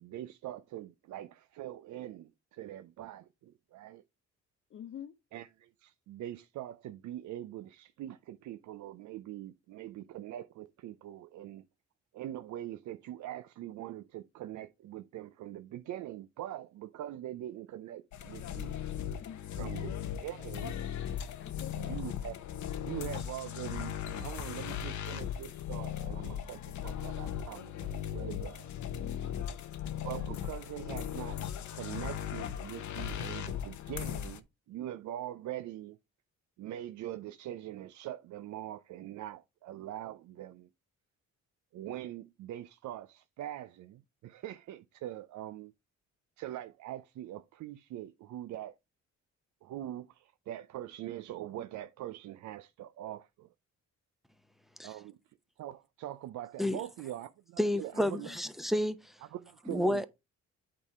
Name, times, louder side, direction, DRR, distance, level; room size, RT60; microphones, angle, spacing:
voice 1, 0.0-4.0 5.3-11.7 12.1-18.7 19.6-19.9 20.2-20.8 21.7-22.4 22.8-28.7 30.0-31.4 31.7-36.0 36.6-40.7 41.7-45.7 46.4-48.8 49.6-53.5 54.8-55.2 55.6-58.3 59.2-60.1, right 13 dB, 75° right, 0.5 m, -43 dB
voice 2, 4.7-5.1 19.2-19.7 21.4-22.0 29.0-29.3 57.9-58.4, left 9 dB, 40° left, 0.5 m, -47 dB
sound 1, 18.1-34.4, left 9 dB, 70° left, 0.9 m, -38 dB
voice 3, 57.6-59.1 59.7-60.1, left 1 dB, ahead, 0.7 m, -30 dB
8.8 x 3.6 x 4.7 m
cardioid pair, 90°, 30 cm